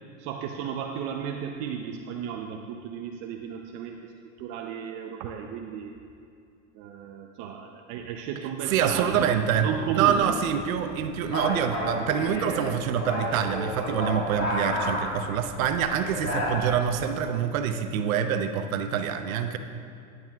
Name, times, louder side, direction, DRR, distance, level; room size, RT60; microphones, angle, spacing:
voice 1, 0.2-4.0 4.4-6.0 6.8-9.3 9.6-10.3, right 8 dB, 50° right, 2 dB, 0.7 m, -34 dB
sound 1, 8.7-17.1, left 1 dB, 40° left, 2.5 m, -32 dB
voice 2, 8.7-19.6, right 8 dB, 85° right, 7 dB, 0.8 m, -26 dB
15.5 x 9.5 x 2.4 m, 2.5 s
supercardioid pair, 125°, 40 cm